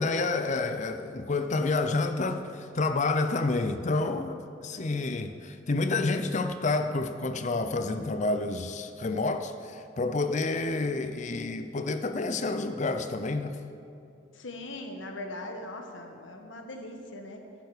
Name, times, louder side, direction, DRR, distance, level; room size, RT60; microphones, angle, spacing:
voice 1, 0.0-13.6, left 3 dB, 35° left, 9 dB, 0.5 m, -29 dB
voice 2, 14.3-17.4, left 1 dB, 70° left, 4 dB, 1.3 m, -40 dB
15.0 x 9.4 x 4.9 m, 2.7 s
head